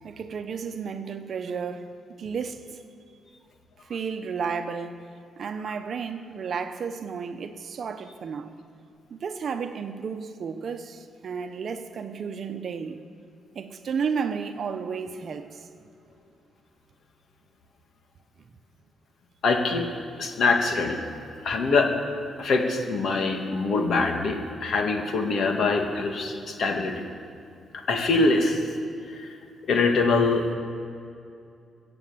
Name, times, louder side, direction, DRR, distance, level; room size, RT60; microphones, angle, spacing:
voice 1, 0.0-2.8 3.9-5.0 5.4-8.6 9.1-13.0 13.5-15.7, right 6 dB, 50° right, 0.9 m, -32 dB
voice 2, 19.4-19.9 20.2-21.0 21.4-21.9 22.4-27.0 27.7-28.6 29.1-29.3 29.7-30.5, left 3 dB, 55° left, 1.9 m, -24 dB
22.0 x 7.9 x 7.9 m
cardioid pair, 140°, 0 cm